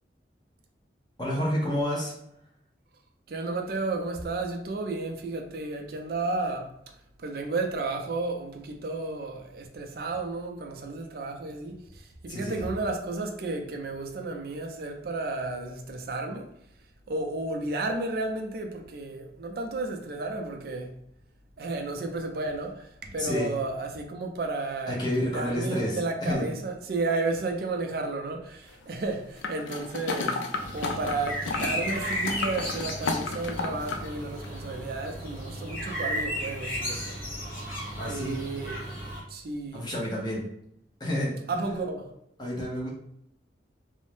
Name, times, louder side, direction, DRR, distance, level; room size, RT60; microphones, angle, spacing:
voice 1, 1.2-2.1 12.3-12.6 23.2-23.5 24.9-26.5 38.0-38.4 38.8-39.0 39.7-40.5 41.0-41.5 42.4-42.9, left 1 dB, 25° left, 0.7 m, -30 dB
voice 2, 3.3-6.7 7.2-11.8 12.2-16.4 17.1-20.9 21.6-25.0 25.3-30.4 30.7-37.2 38.1-38.9 39.3-39.8 41.5-42.1, right 3 dB, 55° right, 0.4 m, -32 dB
sound 1, 29.4-34.1 34.4-34.5, left 4 dB, 90° left, 0.4 m, -33 dB
sound 2, 30.6-39.2, equal, 50° left, 0.9 m, -34 dB
2.6 x 2.1 x 3.1 m
head